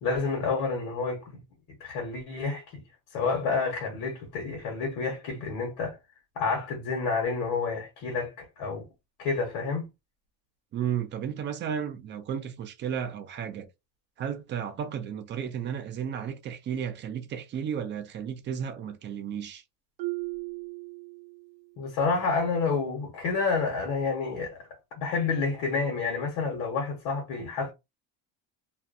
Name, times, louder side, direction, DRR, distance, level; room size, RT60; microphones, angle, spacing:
voice 1, 0.0-1.4 1.8-2.8 3.1-6.0 6.3-8.8 9.2-9.9 21.8-24.7 25.0-27.7, left 4 dB, 85° left, 1.1 m, -29 dB
voice 2, 10.7-13.7 14.2-19.6, right 8 dB, 30° right, 0.4 m, -33 dB
Marimba xylophone, 20.0-21.7, right 26 dB, 90° right, 0.7 m, -37 dB
2.5 x 2.1 x 2.5 m
cardioid pair, 165°, 37 cm